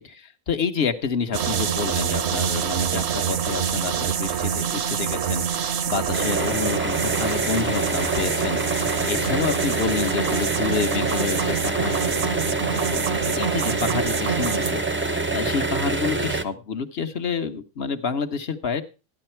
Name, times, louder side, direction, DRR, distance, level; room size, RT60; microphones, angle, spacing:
voice 1, 0.5-18.8, left 5 dB, 55° left, 9 dB, 1.2 m, -29 dB
sound 1, 1.3-14.7, right 8 dB, 60° right, 1.0 m, -27 dB
sound 2, 6.1-16.4, right 3 dB, 15° right, 0.5 m, -26 dB
sound 3, 7.1-12.1, left 5 dB, 70° left, 1.5 m, -40 dB
13.0 x 9.9 x 4.4 m, 0.31 s
omnidirectional pair, 1.4 m